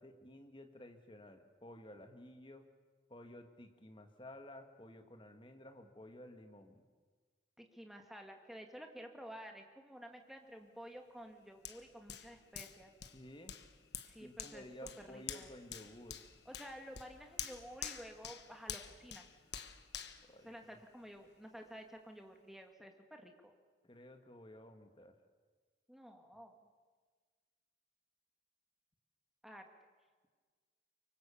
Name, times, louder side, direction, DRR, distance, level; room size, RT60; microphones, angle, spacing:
voice 1, 0.0-2.7 3.1-6.8 13.1-13.6 14.2-16.2 20.3-20.8 23.8-25.2, left 1 dB, 25° left, 6 dB, 1.8 m, -54 dB
voice 2, 7.6-12.9 14.0-15.5 16.5-19.3 20.4-23.5 25.9-26.6 29.4-29.7, equal, ahead, 3 dB, 2.0 m, -52 dB
Hands, 11.6-21.2 21.6-21.8, left 9 dB, 60° left, 1.3 m, -48 dB
24.0 x 24.0 x 7.1 m, 1.5 s
head